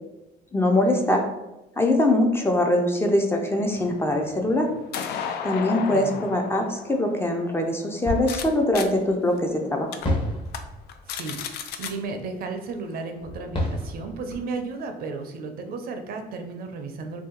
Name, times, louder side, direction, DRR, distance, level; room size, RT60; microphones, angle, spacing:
voice 1, 0.5-1.2 1.8-4.7 5.4-9.9, left 1 dB, 15° left, 3 dB, 0.4 m, -22 dB
sound 1, 3.7-8.4 8.7-8.9 9.4-9.5 9.9-10.1 10.5-10.6 10.9-11.9, left 7 dB, 70° left, 0.4 m, -34 dB
voice 2, 5.8-6.2 11.1-17.2, right 4 dB, 60° right, 6 dB, 0.5 m, -34 dB
sound 2, 8.0-9.3 10.0-12.4 13.2-14.4, left 1 dB, 30° left, 0.9 m, -31 dB
2.7 x 2.3 x 3.7 m, 0.97 s
cardioid pair, 110°, 17 cm